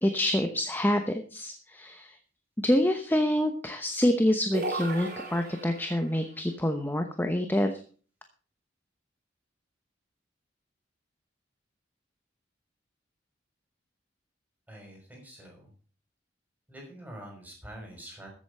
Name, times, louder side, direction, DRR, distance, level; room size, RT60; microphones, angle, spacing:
voice 1, 0.0-2.2 2.6-7.7, left 1 dB, 10° left, 6 dB, 0.9 m, -27 dB
sound 1, 4.5-6.1, right 2 dB, 50° right, 4.0 m, -35 dB
voice 2, 14.7-15.7 16.7-18.3, right 1 dB, 10° right, 0 dB, 5.8 m, -46 dB
14.0 x 8.2 x 5.5 m, 0.41 s
head